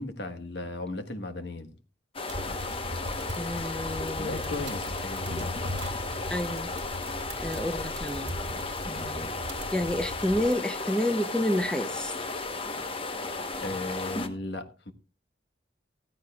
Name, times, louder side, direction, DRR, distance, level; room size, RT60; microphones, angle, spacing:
voice 1, 0.0-1.7 4.2-5.5 13.6-14.9, left 2 dB, 65° left, 1.4 m, -36 dB
sound 1, 2.1-14.3, left 3 dB, 30° left, 1.1 m, -34 dB
sound 2, 2.3-10.5, equal, 65° right, 2.1 m, -39 dB
voice 2, 3.4-4.6 6.3-6.7 7.4-8.3 8.9-9.3 9.7-12.1, left 1 dB, 5° left, 0.7 m, -29 dB
15.5 x 14.5 x 2.4 m
head